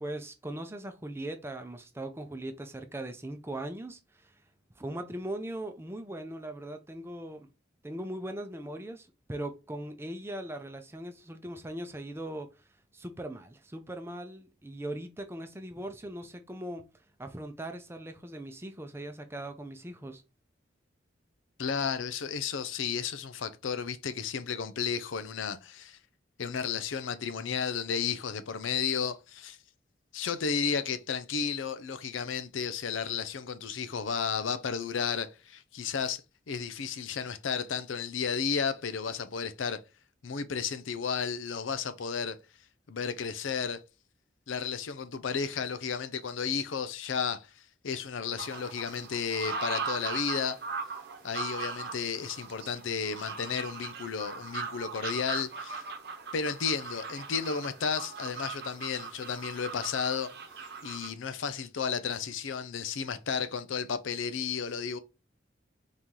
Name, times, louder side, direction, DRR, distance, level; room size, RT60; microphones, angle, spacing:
voice 1, 0.0-4.3 4.8-7.5 7.8-12.5 12.9-16.8 17.2-20.2, right 1 dB, 15° right, 0.5 m, -39 dB
voice 2, 21.6-26.0 26.4-29.6 30.1-39.8 40.2-42.4 42.9-43.8 44.5-47.5 47.8-50.6 51.2-55.8 56.3-60.3 60.8-65.0, left 6 dB, 85° left, 0.5 m, -33 dB
sound 1, 48.4-61.1, right 5 dB, 60° right, 0.9 m, -39 dB
4.1 x 3.0 x 3.7 m
head